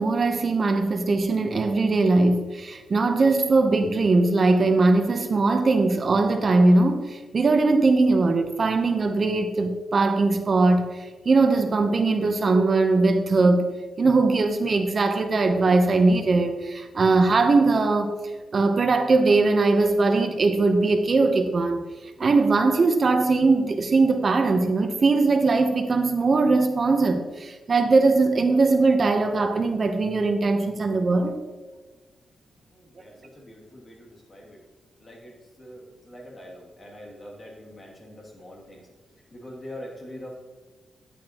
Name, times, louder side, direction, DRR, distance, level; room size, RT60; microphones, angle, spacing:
voice 1, 0.0-10.9 11.2-13.6 14.0-18.1 18.5-21.8 22.2-31.3, right 3 dB, 50° right, 6 dB, 0.8 m, -20 dB
voice 2, 32.7-34.6 35.0-38.9 39.3-40.3, left 1 dB, 40° left, -2 dB, 2.5 m, -43 dB
11.0 x 8.2 x 3.0 m, 1.3 s
cardioid pair, 75°, 0 cm